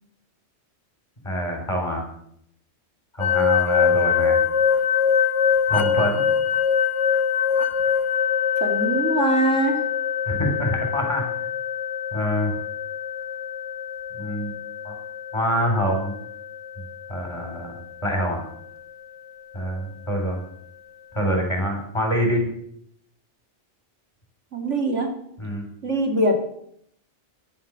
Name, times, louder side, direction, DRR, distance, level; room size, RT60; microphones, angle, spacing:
voice 1, 1.2-2.0 3.1-4.4 5.7-6.3 10.3-11.5 12.1-12.6 14.2-14.5 14.8-14.9 15.3-16.1 17.1-17.8 18.0-18.4 19.5-20.4 21.1-22.4 25.4-25.7, equal, 25° left, 2 dB, 4.6 m, -25 dB
sound 1, 3.2-18.0, left 7 dB, 80° left, 1.4 m, -24 dB
voice 2, 8.6-9.8 24.5-25.2 25.8-26.4, right 2 dB, 85° right, 4 dB, 2.6 m, -22 dB
13.5 x 11.0 x 6.9 m, 0.70 s
omnidirectional pair, 1.2 m